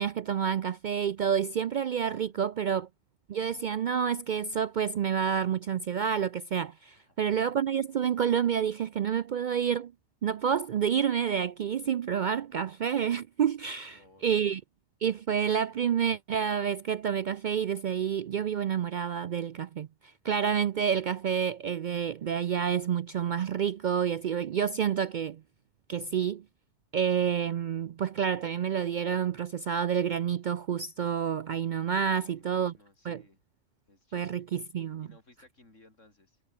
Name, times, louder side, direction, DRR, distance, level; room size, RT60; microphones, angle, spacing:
voice 1, 0.0-2.9 3.3-9.9 10.2-14.6 15.0-19.9 20.2-25.4 25.9-26.4 26.9-32.7 33.0-33.2 34.1-35.1, right 8 dB, 70° right, 0.4 m, -29 dB
voice 2, 2.1-2.4 6.8-7.2 13.9-14.6 32.2-33.4 33.9-34.5 35.0-36.4, left 2 dB, 75° left, 5.2 m, -60 dB
omnidirectional pair, 1.3 m